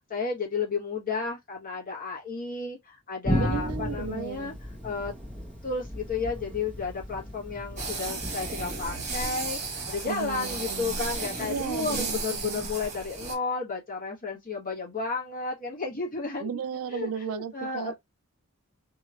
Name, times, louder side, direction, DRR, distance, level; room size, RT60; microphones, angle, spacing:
voice 1, 0.0-4.5 4.8-5.1 5.6-16.6 16.9-17.9, left 4 dB, 40° left, 1.4 m, -32 dB
Thunder, 3.2-12.7, left 1 dB, 5° left, 1.3 m, -36 dB
voice 2, 3.4-4.6 10.0-11.0 11.4-12.1 12.4-12.6 16.4-17.9, right 7 dB, 70° right, 0.4 m, -34 dB
sound 1, 7.8-13.3, right 4 dB, 30° right, 1.6 m, -34 dB
3.0 x 2.8 x 2.4 m
head